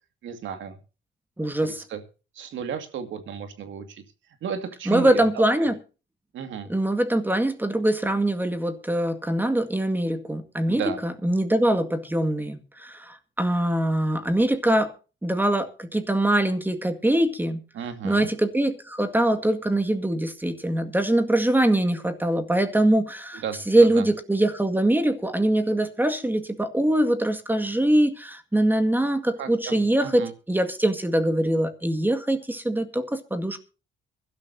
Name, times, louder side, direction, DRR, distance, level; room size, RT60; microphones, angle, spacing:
voice 1, 0.2-0.8 1.6-2.0 2.4-4.0 4.4-5.2 5.6-5.7 6.3-6.7 10.7-11.0 17.7-18.3 23.4-24.0 29.4-30.3, right 7 dB, 75° right, 2.2 m, -33 dB
voice 2, 1.4-1.8 4.9-5.8 6.7-14.9 15.2-17.6 18.0-33.6, right 1 dB, 10° right, 2.0 m, -23 dB
23.0 x 12.5 x 2.8 m
cardioid pair, 90°, 20 cm